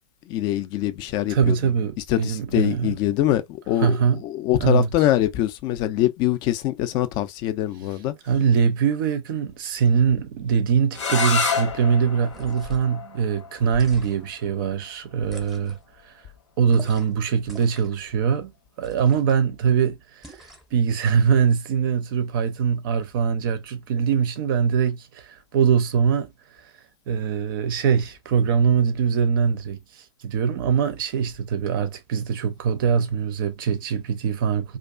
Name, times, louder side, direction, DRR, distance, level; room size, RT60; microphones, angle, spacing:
voice 1, 0.3-8.1, left 13 dB, 30° left, 0.3 m, -24 dB
voice 2, 1.3-2.9 3.8-4.2 4.6-4.9 8.3-15.8 16.0-16.1 16.6-18.5 18.8-26.3 26.6-26.7 27.1-34.8, right 7 dB, 45° right, 0.5 m, -22 dB
sound 1, 10.9-16.6, left 5 dB, 70° left, 0.7 m, -31 dB
sound 2, 12.2-12.9 13.7-14.4 15.2-15.8 16.7-17.2 17.4-18.0 18.8-19.4 20.2-20.8, right 1 dB, ahead, 0.7 m, -44 dB
2.3 x 2.3 x 2.3 m
figure-of-eight pair, 110°, 15 cm